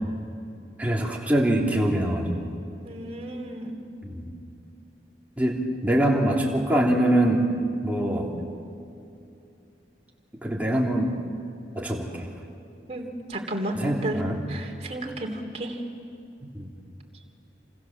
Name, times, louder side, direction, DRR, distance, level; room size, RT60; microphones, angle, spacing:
voice 1, 0.8-2.5 4.0-4.3 5.4-7.4 7.8-8.3 10.4-11.1 11.7-12.3 13.8-14.4 16.5-16.7, right 1 dB, 10° right, -2 dB, 3.3 m, -24 dB
voice 2, 2.8-3.8 7.9-8.2 12.9-13.8 14.0-14.2 14.5-15.8, right 1 dB, 35° right, 2 dB, 3.3 m, -33 dB
29.0 x 27.0 x 7.5 m, 2.6 s
head